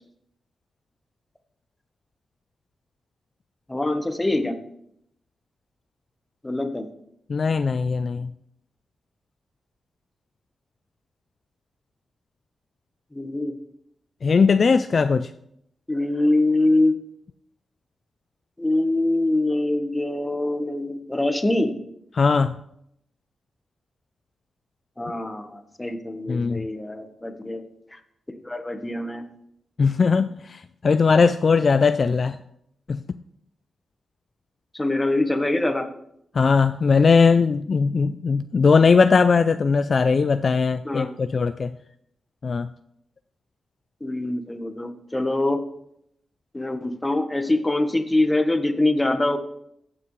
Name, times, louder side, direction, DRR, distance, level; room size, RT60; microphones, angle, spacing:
voice 1, 3.7-4.5 6.4-6.9 13.1-13.5 15.9-17.0 18.6-21.7 25.0-27.6 27.9-28.0 28.4-29.2 34.7-35.9 40.8-41.1 44.0-45.6 46.5-49.4, left 2 dB, 15° left, 8 dB, 1.1 m, -24 dB
voice 2, 7.3-8.3 14.2-15.3 22.1-22.5 26.3-26.7 29.8-32.4 32.9-33.0 36.3-41.7 42.4-42.7, left 5 dB, 50° left, 12 dB, 0.3 m, -19 dB
15.5 x 6.1 x 3.2 m, 0.75 s
cardioid pair, 75°, 0 cm